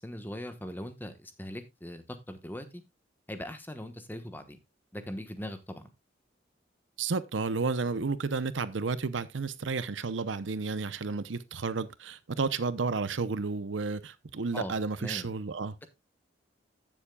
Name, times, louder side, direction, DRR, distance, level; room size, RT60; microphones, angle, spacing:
voice 1, 0.0-2.8 3.3-4.6 4.9-5.9 14.5-15.3, equal, 10° left, 1.2 m, -40 dB
voice 2, 7.0-15.8, right 4 dB, 85° right, 0.7 m, -32 dB
15.0 x 7.3 x 2.3 m
head